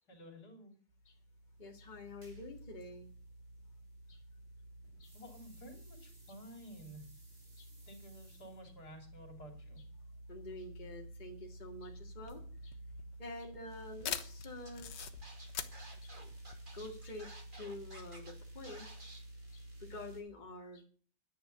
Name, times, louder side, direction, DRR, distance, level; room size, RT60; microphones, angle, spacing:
voice 1, 0.1-0.7 5.1-7.1 7.9-9.8, equal, 65° left, 3 dB, 3.8 m, -52 dB
sound 1, 0.9-20.2, right 1 dB, 55° right, 6.1 m, -52 dB
voice 2, 1.6-3.1 4.1-4.2 5.0-5.1 7.6-7.7 10.3-12.7 13.2-14.9 16.0-16.3 16.7-17.3 17.5-18.9 19.5-20.8, left 2 dB, 25° left, 1 dB, 2.2 m, -48 dB
sound 2, 12.1-17.3, left 9 dB, 85° left, 1.7 m, -44 dB
Scratching (performance technique), 14.7-14.8 15.0-18.3 18.6-19.2, right 2 dB, 30° right, 2.7 m, -53 dB
10.5 x 10.0 x 6.8 m, 0.42 s
omnidirectional pair, 1.8 m